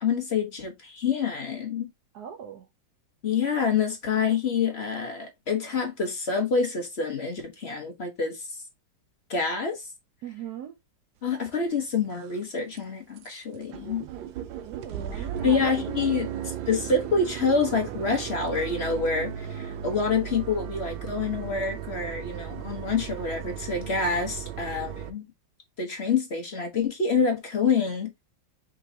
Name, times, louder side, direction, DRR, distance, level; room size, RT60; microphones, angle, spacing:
voice 1, 0.0-1.9 3.2-8.5 9.3-9.9 11.2-14.0 15.2-16.3 16.7-25.2 25.8-28.1, left 5 dB, 45° left, 0.9 m, -27 dB
voice 2, 2.1-2.7 10.2-10.7 14.6-16.5, right 9 dB, 65° right, 1.1 m, -40 dB
sound 1, 11.5-11.6 12.1-12.4 12.8-12.9 13.2-13.3 13.5-25.1, right 10 dB, 90° right, 1.4 m, -36 dB
5.0 x 3.8 x 2.7 m
omnidirectional pair, 2.0 m